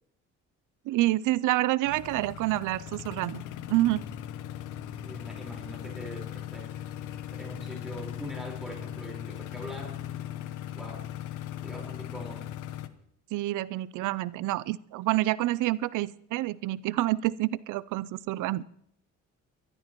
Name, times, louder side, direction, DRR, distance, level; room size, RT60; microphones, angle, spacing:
voice 1, 0.9-4.0 13.3-18.6, right 17 dB, 85° right, 19 dB, 0.5 m, -28 dB
sound 1, 1.8-12.9, left 11 dB, 90° left, 0.8 m, -39 dB
voice 2, 5.0-6.7 7.1-10.0 10.7-12.5, equal, ahead, -2 dB, 4.3 m, -43 dB
25.0 x 12.5 x 3.0 m, 0.72 s
cardioid pair, 90°, 30 cm